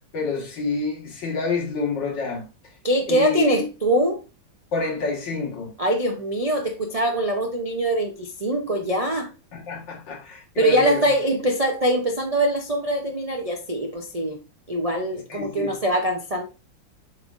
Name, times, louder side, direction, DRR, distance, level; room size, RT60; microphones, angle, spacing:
voice 1, 0.1-2.4 3.1-3.7 4.7-5.7 9.5-11.1 15.3-15.7, left 4 dB, 65° left, 2.5 m, -28 dB
voice 2, 2.8-4.2 5.8-9.3 10.6-14.4 14.7-16.4, right 1 dB, 65° right, 0.3 m, -23 dB
7.6 x 5.5 x 2.6 m
omnidirectional pair, 2.1 m